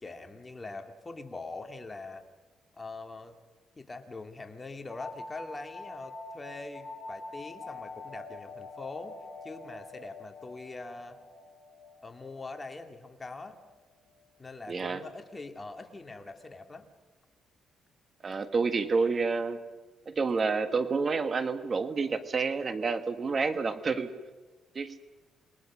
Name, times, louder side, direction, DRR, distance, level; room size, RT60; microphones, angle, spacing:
voice 1, 0.0-2.2 2.7-3.4 3.8-9.2 9.4-11.2 12.0-13.6 14.4-16.9, left 3 dB, 20° left, 5 dB, 2.4 m, -43 dB
sound 1, 4.9-14.3, left 3 dB, 50° left, 5.1 m, -46 dB
voice 2, 14.7-15.0 18.2-19.6 20.1-24.1 24.7-25.0, right 4 dB, 40° right, 10 dB, 1.4 m, -29 dB
27.5 x 21.5 x 6.3 m, 1.3 s
cardioid pair, 90°, 0 cm